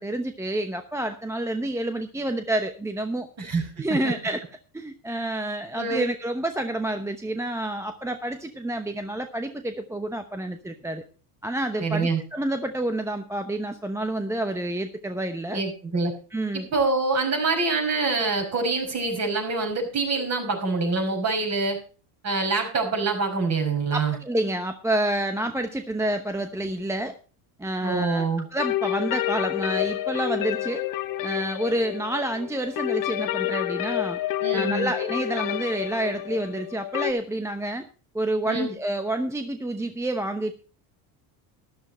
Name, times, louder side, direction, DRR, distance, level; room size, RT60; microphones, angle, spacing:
voice 1, 0.0-3.3 3.8-4.4 4.7-11.0 11.4-15.6 16.3-16.7 23.9-27.1 27.6-30.8 31.2-34.2 34.5-37.9 38.1-40.5, right 1 dB, 5° right, 8 dB, 0.9 m, -28 dB
voice 2, 3.4-4.1 5.8-6.1 11.8-12.2 15.5-16.1 16.5-21.8 22.2-24.2 27.8-28.5 34.4-34.9 38.4-38.7, right 3 dB, 35° right, 3 dB, 5.4 m, -25 dB
sound 1, 28.6-37.1, left 14 dB, 45° left, 0.9 m, -29 dB
13.0 x 11.0 x 4.3 m, 0.37 s
supercardioid pair, 105°, 44 cm